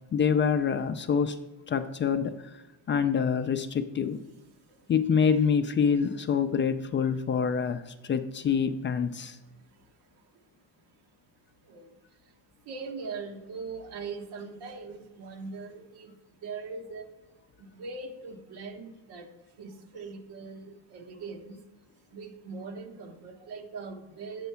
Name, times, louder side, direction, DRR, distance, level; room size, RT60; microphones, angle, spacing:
voice 1, 0.1-1.4 1.7-4.2 4.9-9.4, left 6 dB, 30° left, 9 dB, 0.4 m, -26 dB
voice 2, 12.7-16.1 16.4-17.0 17.7-19.3 19.6-21.6 22.1-24.5, right 4 dB, 80° right, 3 dB, 1.3 m, -40 dB
8.2 x 4.6 x 5.6 m, 1.0 s
cardioid pair, 125°, 39 cm